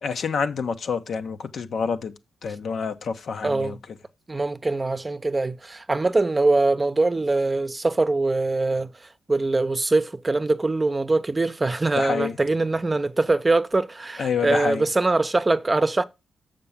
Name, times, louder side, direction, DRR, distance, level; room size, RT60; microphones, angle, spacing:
voice 1, 0.0-2.1 2.4-3.8 12.0-12.3 14.2-14.9, left 6 dB, 70° left, 0.9 m, -27 dB
voice 2, 3.4-3.8 4.3-8.9 9.3-16.0, right 2 dB, 30° right, 0.7 m, -23 dB
6.8 x 5.3 x 7.1 m
supercardioid pair, 50°, 0 cm